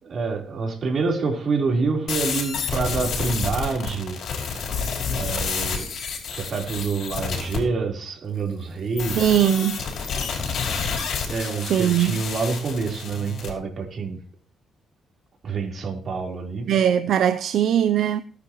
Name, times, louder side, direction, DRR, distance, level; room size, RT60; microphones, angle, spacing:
voice 1, 0.0-4.2 5.1-5.9 6.3-9.4 11.3-14.2 15.4-16.7, right 4 dB, 50° right, 4.2 m, -27 dB
sound 1, 2.1-7.6 9.0-13.5, left 5 dB, 65° left, 5.4 m, -29 dB
voice 2, 9.2-9.8 11.7-12.2 16.7-18.2, right 10 dB, 70° right, 0.6 m, -20 dB
19.5 x 9.8 x 3.1 m
cardioid pair, 90°, 0 cm